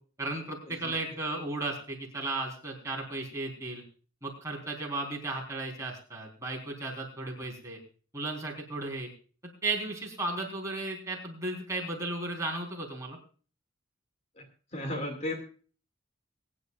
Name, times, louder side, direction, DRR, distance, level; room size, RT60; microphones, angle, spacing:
voice 1, 0.2-3.8 4.2-7.8 8.1-9.1 9.6-13.2, right 2 dB, 15° right, 0 dB, 4.1 m, -35 dB
voice 2, 14.7-15.4, left 1 dB, 35° left, 4 dB, 2.4 m, -35 dB
23.5 x 10.5 x 2.5 m, 0.39 s
head